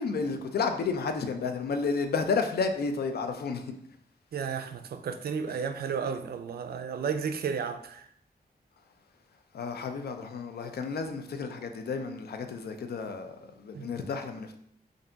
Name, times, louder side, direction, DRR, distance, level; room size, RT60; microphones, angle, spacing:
voice 1, 0.0-3.7 5.5-5.6 9.5-14.6, left 4 dB, 80° left, 0.5 m, -31 dB
voice 2, 4.3-8.0 13.7-13.9, right 6 dB, 75° right, 0.4 m, -33 dB
3.3 x 2.6 x 3.9 m
wide cardioid pair, 85°, 16 cm